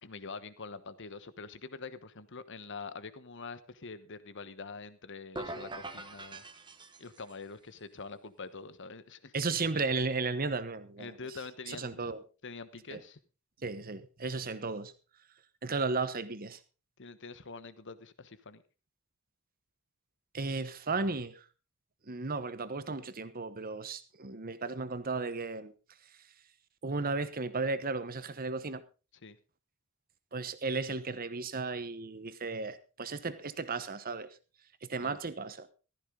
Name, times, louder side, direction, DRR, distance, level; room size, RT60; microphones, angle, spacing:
voice 1, 0.0-6.4 7.0-9.3 11.0-12.2 12.4-13.2 17.0-18.6 29.2-29.4 35.0-35.2, left 4 dB, 55° left, 1.2 m, -45 dB
sound 1, 5.3-7.4, right 2 dB, 20° right, 1.1 m, -43 dB
voice 2, 9.3-11.1 11.7-12.2 12.9-13.0 13.6-14.9 15.6-16.6 20.3-21.4 22.1-25.7 26.8-28.8 30.3-34.4 34.8-35.7, right 3 dB, 40° right, 1.1 m, -34 dB
15.0 x 13.5 x 3.8 m
head